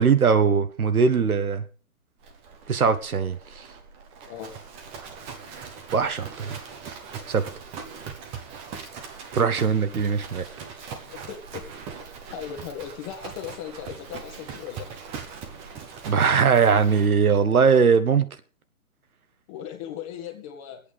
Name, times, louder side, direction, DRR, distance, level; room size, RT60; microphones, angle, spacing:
voice 1, 0.0-1.6 2.7-3.6 5.9-6.6 7.3-7.4 9.3-10.5 16.1-18.3, right 6 dB, 80° right, 10 dB, 1.3 m, -20 dB
Livestock farm animals working animals, 2.2-17.8, right 6 dB, 15° right, 0.9 m, -41 dB
voice 2, 11.1-11.6 12.0-14.9 19.5-20.8, left 9 dB, 25° left, 4 dB, 1.5 m, -38 dB
25.0 x 8.6 x 3.3 m, 0.35 s
hypercardioid pair, 145°, 43 cm